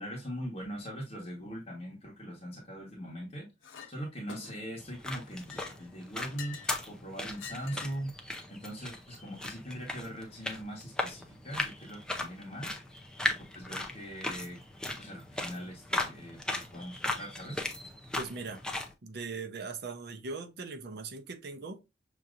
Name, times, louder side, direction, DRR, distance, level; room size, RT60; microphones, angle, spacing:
voice 1, 0.0-3.5 3.9-6.6 6.9-8.1 8.5-12.8 13.2-17.6, equal, 30° left, 1.2 m, -41 dB
Chink clink, 3.6-3.9 4.3-4.8 5.3-6.8 7.3-8.0, left 6 dB, 90° left, 0.7 m, -47 dB
sound 1, 4.8-18.9, left 2 dB, 5° left, 0.5 m, -38 dB
voice 2, 18.2-18.6 19.0-21.8, right 4 dB, 55° right, 0.7 m, -40 dB
6.2 x 2.8 x 2.5 m
head